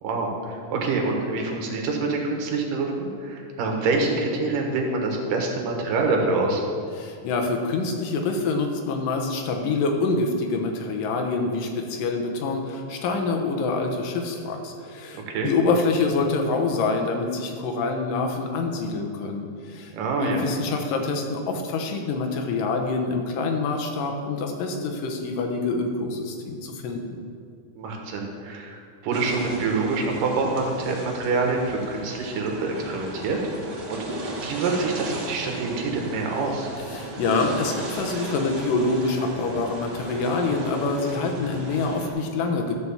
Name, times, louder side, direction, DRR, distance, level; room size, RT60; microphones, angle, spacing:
voice 1, 0.0-6.6 15.1-15.5 19.9-20.4 27.8-36.7, right 3 dB, 90° right, 1 dB, 3.0 m, -26 dB
voice 2, 7.0-19.9 20.2-27.2 36.9-42.7, left 3 dB, 85° left, 4 dB, 2.7 m, -26 dB
sound 1, 29.1-42.1, right 2 dB, 50° right, 1.3 m, -36 dB
13.0 x 4.7 x 7.1 m, 2.2 s
omnidirectional pair, 3.7 m